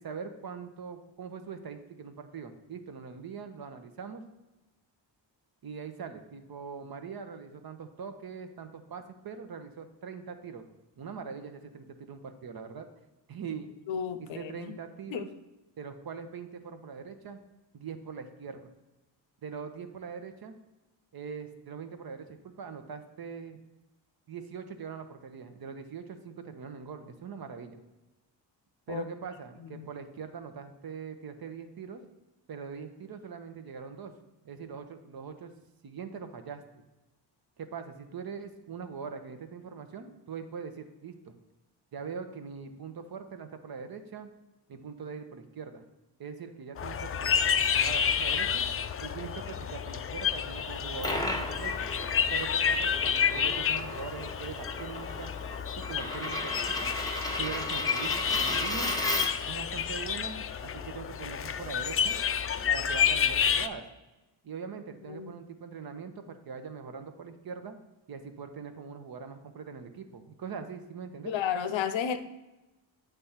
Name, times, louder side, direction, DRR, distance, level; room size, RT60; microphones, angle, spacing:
voice 1, 0.0-4.2 5.6-10.6 11.0-12.9 13.3-13.7 14.2-15.3 15.8-17.4 17.7-18.7 19.4-20.5 21.1-23.6 24.3-27.8 28.9-32.0 32.5-34.1 34.4-35.5 35.8-36.6 37.6-41.3 41.9-44.3 44.7-45.8 46.2-48.6 49.0-51.9 52.3-55.3 55.9-56.9 57.4-58.9 59.5-62.2 62.7-63.8 64.4-67.8 68.1-71.3, right 6 dB, 55° right, 8 dB, 0.9 m, -42 dB
voice 2, 13.9-14.7 15.1-15.2 28.9-29.0 65.1-65.3 71.2-72.2, left 8 dB, 85° left, 10 dB, 0.7 m, -32 dB
sound 1, 46.8-63.7, left 7 dB, 35° left, 0.4 m, -30 dB
Coin (dropping), 50.7-59.6, left 1 dB, 10° left, 0.9 m, -35 dB
8.2 x 3.5 x 5.7 m, 1.0 s
cardioid pair, 85°, 44 cm